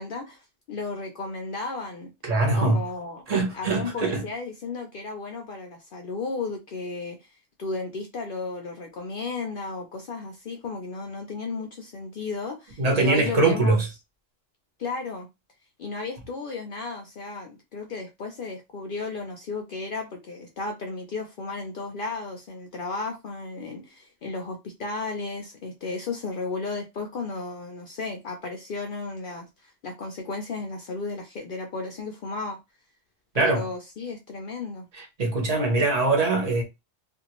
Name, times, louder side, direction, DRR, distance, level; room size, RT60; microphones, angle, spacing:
voice 1, 0.0-2.1 2.5-3.2 3.5-13.8 14.8-15.3 15.8-32.6 33.3-34.9, left 3 dB, 60° left, 0.6 m, -34 dB
voice 2, 2.2-2.8 3.3-4.2 12.8-13.9 33.3-33.7 35.0-36.6, right 3 dB, 35° right, 0.9 m, -22 dB
2.6 x 2.4 x 2.9 m
omnidirectional pair, 1.2 m